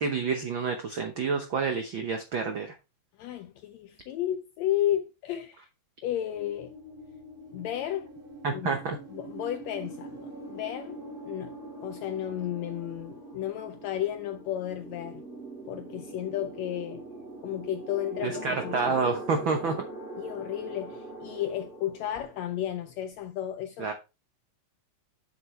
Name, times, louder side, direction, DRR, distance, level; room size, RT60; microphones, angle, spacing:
voice 1, 0.0-2.7 8.4-9.0 18.2-19.8 23.8-23.9, right 5 dB, 85° right, 1.1 m, -28 dB
voice 2, 3.2-5.7 6.0-6.7 7.5-8.1 8.5-8.8 9.1-11.0 11.2-15.2 15.6-17.0 17.4-18.9 20.2-23.9, left 12 dB, 85° left, 1.6 m, -33 dB
sound 1, 6.3-23.2, right 2 dB, 15° right, 3.8 m, -43 dB
7.8 x 7.1 x 3.2 m
omnidirectional pair, 3.7 m